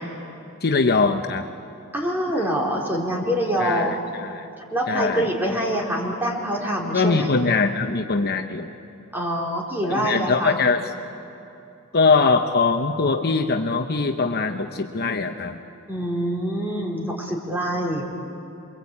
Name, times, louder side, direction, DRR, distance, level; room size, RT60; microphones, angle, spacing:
voice 1, 0.6-1.5 3.6-4.5 4.9-5.3 6.9-8.7 10.0-10.8 11.9-15.6, left 4 dB, 45° left, 5 dB, 0.9 m, -22 dB
voice 2, 1.9-4.2 4.7-7.3 9.1-10.6 15.9-18.1, right 1 dB, 10° right, -3 dB, 4.3 m, -25 dB
28.5 x 23.0 x 8.6 m, 2.7 s
head